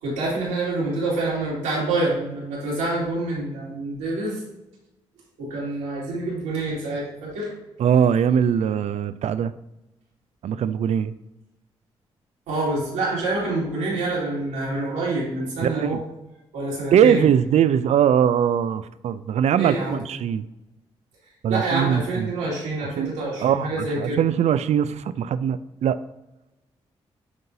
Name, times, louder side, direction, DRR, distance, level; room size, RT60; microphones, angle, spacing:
voice 1, 0.0-4.4 5.4-7.5 12.5-16.0 16.5-17.2 19.6-20.0 21.5-24.2, right 2 dB, 85° right, -6 dB, 2.2 m, -27 dB
voice 2, 7.8-9.5 10.4-11.1 15.6-16.0 16.9-20.5 21.4-22.3 23.0-23.1 23.4-26.0, right 8 dB, 60° right, 14 dB, 0.4 m, -21 dB
9.4 x 3.8 x 2.7 m, 0.96 s
hypercardioid pair, 40°, 13 cm